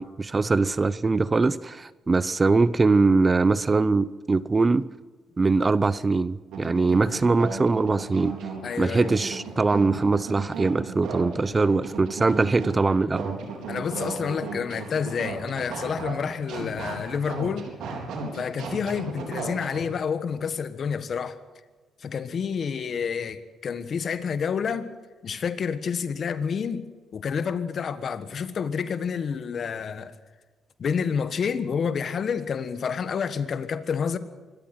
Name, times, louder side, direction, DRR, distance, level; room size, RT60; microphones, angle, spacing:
voice 1, 0.0-4.9 5.4-8.4 8.8-13.3, right 3 dB, 25° right, 0.6 m, -22 dB
sound 1, 6.5-19.8, right 4 dB, 80° right, 4.2 m, -35 dB
voice 2, 8.6-9.1 13.7-17.7 18.3-21.4 22.0-24.9 25.2-26.9 27.1-30.1 30.8-34.2, left 6 dB, 50° left, 1.5 m, -29 dB
25.0 x 13.5 x 7.9 m
cardioid pair, 90°, 0 cm